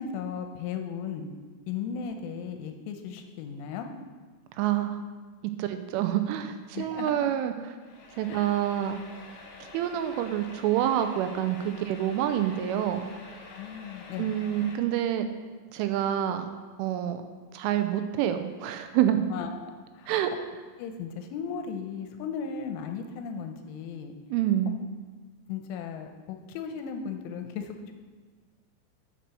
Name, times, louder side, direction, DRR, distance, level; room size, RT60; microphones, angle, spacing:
voice 1, 0.0-1.3 1.7-3.9 6.7-7.3 8.3-8.6 13.4-14.4 19.3-20.1 20.8-24.1 25.5-27.9, left 6 dB, 80° left, 5 dB, 3.1 m, -36 dB
voice 2, 4.6-5.0 5.6-7.5 8.2-9.0 9.6-13.1 14.2-15.3 15.7-16.5 16.8-17.2 17.5-19.2 20.1-20.3 24.3-24.8, right 11 dB, 85° right, 8 dB, 3.0 m, -27 dB
sound 1, 7.8-14.8, left 3 dB, 60° left, 2.5 m, -47 dB
8.7 x 7.5 x 6.8 m, 1.4 s
omnidirectional pair, 5.8 m